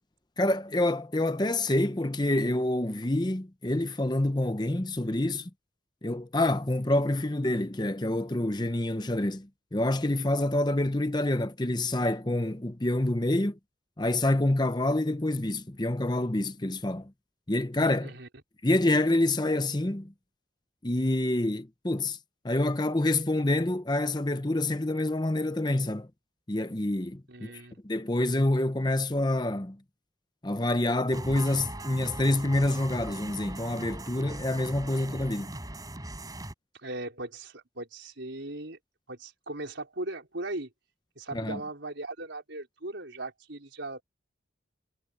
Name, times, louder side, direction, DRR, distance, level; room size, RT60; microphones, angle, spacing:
voice 1, 0.4-5.5 6.0-13.6 14.0-17.1 17.5-18.2 18.6-20.1 20.8-22.2 22.4-26.1 26.5-27.5 27.8-29.8 30.4-35.5 41.3-41.6, left 1 dB, 20° left, 0.9 m, -27 dB
voice 2, 27.3-27.8 36.8-38.8 39.1-40.7 41.2-44.0, right 2 dB, 75° right, 4.4 m, -38 dB
sound 1, 31.1-36.5, right 1 dB, 20° right, 6.6 m, -39 dB
head